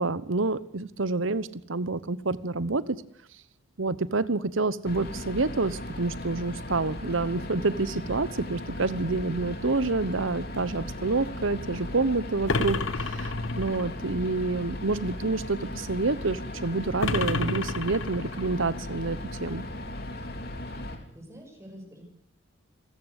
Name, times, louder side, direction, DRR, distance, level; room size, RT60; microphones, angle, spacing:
voice 1, 0.0-3.0 3.8-19.6, right 3 dB, 70° right, 17 dB, 1.1 m, -28 dB
sound 1, 4.8-21.0, left 1 dB, 50° left, 3.3 m, -37 dB
sound 2, 12.5-13.9 17.0-18.5, left 3 dB, 70° left, 1.3 m, -30 dB
voice 2, 20.7-22.0, equal, 15° right, 2 dB, 6.2 m, -48 dB
27.5 x 14.5 x 8.3 m, 0.70 s
head